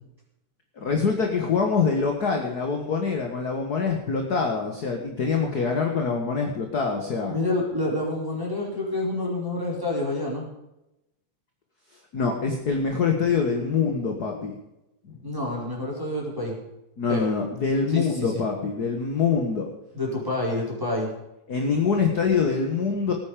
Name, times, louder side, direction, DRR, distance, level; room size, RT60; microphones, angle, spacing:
voice 1, 0.8-7.4 12.1-14.5 17.0-19.7 21.5-23.1, left 5 dB, 40° left, 3 dB, 1.6 m, -25 dB
voice 2, 7.3-10.5 15.2-16.6 17.1-17.3 17.9-18.4 19.9-21.1, left 2 dB, 5° right, -3 dB, 4.8 m, -28 dB
18.5 x 9.5 x 5.2 m, 0.91 s
omnidirectional pair, 3.4 m